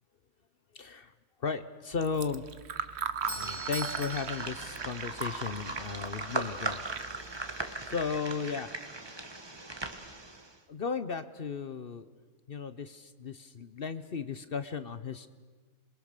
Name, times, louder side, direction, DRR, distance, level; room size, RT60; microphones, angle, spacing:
voice 1, 0.7-1.1 1.4-2.4 3.3-6.8 7.8-8.7 10.7-12.1 12.5-15.3, left 5 dB, 45° left, 12 dB, 0.9 m, -35 dB
Fill (with liquid), 1.9-8.1, right 7 dB, 50° right, 1.0 m, -40 dB
Doorbell, 2.8-5.7, right 1 dB, 10° left, 3.1 m, -42 dB
sound 1, 3.2-10.5, right 2 dB, 20° right, 1.2 m, -39 dB
27.0 x 22.5 x 6.7 m, 1.4 s
omnidirectional pair, 1.6 m